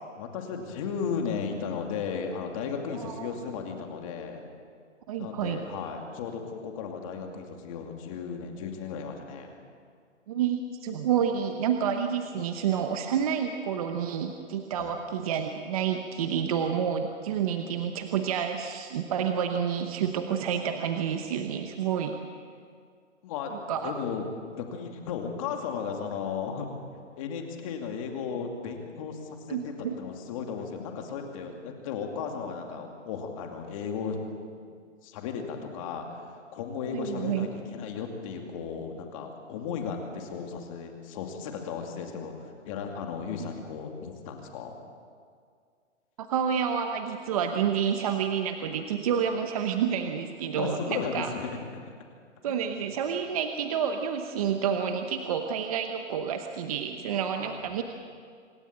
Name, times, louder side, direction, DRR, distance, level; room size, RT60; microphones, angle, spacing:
voice 1, 0.2-4.4 5.2-9.6 14.7-14.9 23.2-24.3 24.6-26.7 27.2-34.2 34.6-34.7 35.0-44.7 50.6-51.8 52.4-52.5 57.3-57.8, left 6 dB, 25° left, 3 dB, 2.5 m, -35 dB
voice 2, 2.9-3.3 5.1-5.6 10.3-22.2 23.7-23.9 29.5-29.9 36.9-37.5 43.4-43.5 46.2-51.3 52.4-57.8, right 8 dB, 30° right, 6 dB, 1.0 m, -29 dB
26.5 x 13.0 x 8.9 m, 2.1 s
hypercardioid pair, 160°, 37 cm